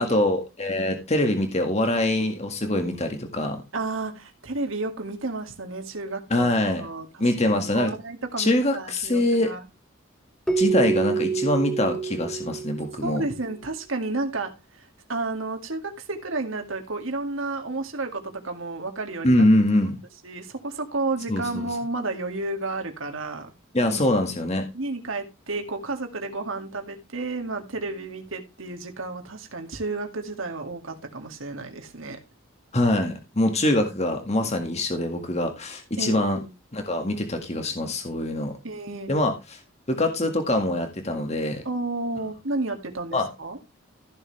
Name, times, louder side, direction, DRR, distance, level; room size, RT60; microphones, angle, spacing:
voice 1, 0.0-3.6 6.3-6.8 7.2-7.9 8.4-9.5 10.6-13.2 19.2-20.0 21.3-21.7 23.7-24.7 32.7-36.4 36.7-38.5 39.1-39.3 39.9-41.6 43.1-43.3, left 1 dB, 30° left, 1.8 m, -23 dB
voice 2, 3.7-9.7 13.0-19.5 20.2-23.5 24.7-32.2 36.0-36.5 38.6-39.1 41.6-43.6, right 2 dB, 80° right, 2.2 m, -32 dB
Keyboard (musical), 10.5-13.3, right 5 dB, 5° left, 1.1 m, -27 dB
14.5 x 7.0 x 3.3 m
head